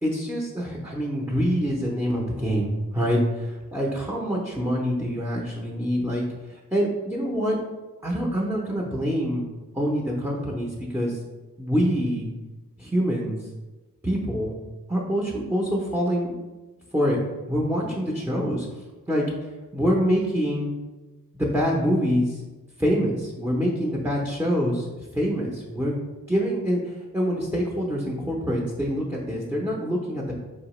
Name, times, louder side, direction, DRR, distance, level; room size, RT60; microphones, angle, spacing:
voice 1, 0.0-7.6 8.0-9.5 9.7-11.2 11.6-12.3 12.8-13.4 14.0-14.6 14.9-16.3 16.9-17.2 17.5-18.7 19.1-19.3 19.7-20.7 21.3-22.4 22.8-24.9 25.1-26.0 26.3-30.3, equal, 5° right, -3 dB, 0.6 m, -25 dB
4.3 x 2.8 x 3.0 m, 1.2 s
wide cardioid pair, 40°, 35 cm